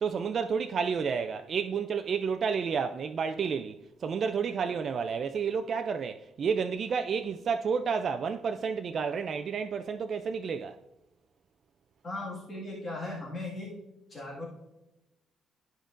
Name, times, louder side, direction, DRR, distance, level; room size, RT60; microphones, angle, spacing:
voice 1, 0.0-10.8, right 6 dB, 45° right, 0.3 m, -30 dB
voice 2, 12.0-13.7 14.1-14.5, left 2 dB, 25° left, 1.8 m, -37 dB
13.0 x 5.1 x 2.5 m
cardioid pair, 135°, 0 cm